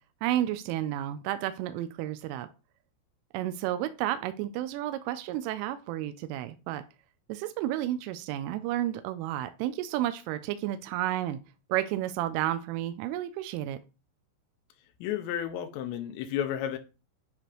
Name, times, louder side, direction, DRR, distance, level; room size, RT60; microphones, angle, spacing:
voice 1, 0.2-2.5 3.3-6.8 7.3-11.4 11.7-13.8, right 13 dB, 85° right, 3.0 m, -31 dB
voice 2, 15.0-16.8, left 10 dB, 85° left, 2.5 m, -32 dB
9.8 x 3.3 x 3.0 m
omnidirectional pair, 5.8 m